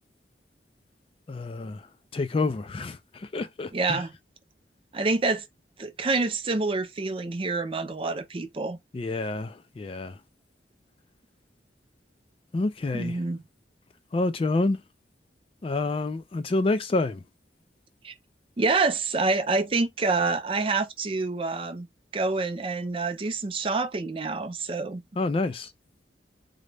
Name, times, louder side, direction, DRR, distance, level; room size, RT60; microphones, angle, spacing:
voice 1, 1.3-1.9 2.1-4.0 8.9-10.2 12.5-13.2 14.1-14.8 15.6-17.2 25.2-25.7, left 2 dB, 30° left, 0.3 m, -28 dB
voice 2, 3.7-4.1 4.9-5.5 5.8-8.8 12.9-13.4 18.0-18.1 18.6-21.9 22.1-25.0, right 3 dB, 30° right, 0.5 m, -27 dB
3.9 x 2.1 x 3.2 m
head